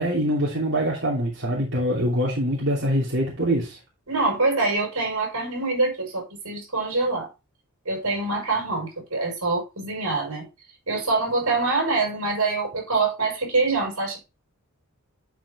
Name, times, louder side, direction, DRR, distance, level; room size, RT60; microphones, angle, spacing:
voice 1, 0.0-3.8, equal, 55° right, 3.0 m, -24 dB
voice 2, 4.1-7.3 7.9-10.5 10.9-14.2, right 3 dB, 75° right, 5.5 m, -25 dB
11.5 x 5.3 x 3.5 m
head